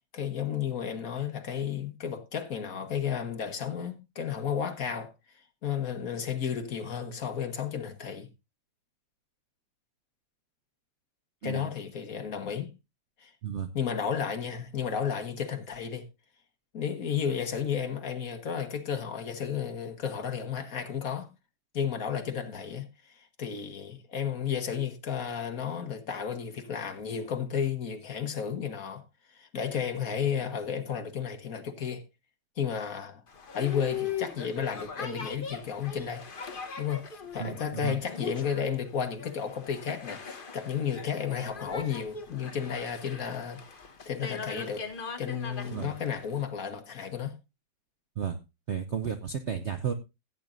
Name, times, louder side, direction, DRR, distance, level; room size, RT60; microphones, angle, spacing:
voice 1, 0.1-5.1 5.6-8.3 11.4-12.7 13.2-13.3 13.7-16.1 16.7-21.3 21.7-29.0 29.3-32.0 32.6-33.2 33.5-36.2 36.8-37.0 37.3-43.6 44.0-44.9 45.2-47.3, left 8 dB, 50° left, 1.6 m, -33 dB
voice 2, 11.4-11.7 13.4-13.7 37.4-38.0 45.7-46.0 48.2-48.4 48.7-49.9, right 7 dB, 60° right, 0.7 m, -33 dB
Boat Water vehicle, 33.3-46.4, left 6 dB, 35° left, 1.0 m, -40 dB
16.0 x 8.9 x 2.6 m
omnidirectional pair, 2.0 m